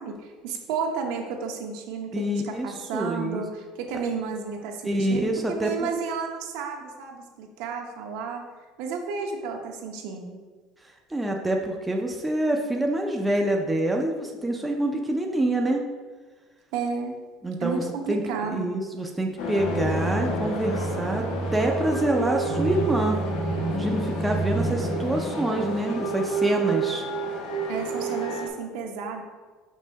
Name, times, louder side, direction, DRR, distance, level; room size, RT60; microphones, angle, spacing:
voice 1, 0.0-8.4 8.8-10.4 16.7-17.1 17.6-18.7 27.7-29.2, right 5 dB, 70° right, 2 dB, 0.9 m, -32 dB
voice 2, 2.1-3.4 4.8-5.9 11.1-15.8 17.4-21.2 21.5-23.2 23.7-27.1, right 1 dB, 5° right, 1 dB, 0.4 m, -26 dB
sound 1, 19.4-28.5, right 2 dB, 85° left, 1.2 m, -28 dB
5.4 x 3.7 x 5.1 m, 1.4 s
cardioid pair, 170°, 0 cm